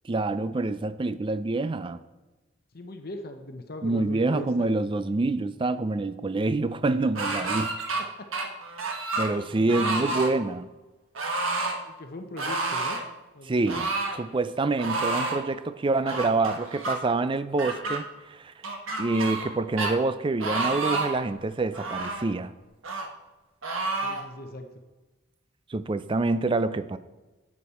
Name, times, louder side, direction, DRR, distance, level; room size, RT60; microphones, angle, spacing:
voice 1, 0.0-2.0 3.8-7.7 9.2-10.7 13.5-13.9 14.2-18.5 19.0-22.5 25.7-27.0, right 3 dB, 25° right, 14 dB, 0.4 m, -26 dB
voice 2, 2.7-4.7 9.3-10.1 11.8-13.0 13.3-13.7 24.0-24.8, left 1 dB, 50° left, 6 dB, 0.8 m, -40 dB
sound 1, 7.2-8.0 8.3-9.3 9.7-10.3 11.2-11.8 12.4-13.0 13.7-14.2 14.8-15.4 16.1-17.0 17.6-18.0 18.6-19.5 19.8-19.9 20.4-21.2 21.7-22.3 22.8-23.1 23.6-24.2, right 3 dB, 80° right, 1.4 m, -29 dB
10.0 x 8.5 x 4.2 m, 1.1 s
head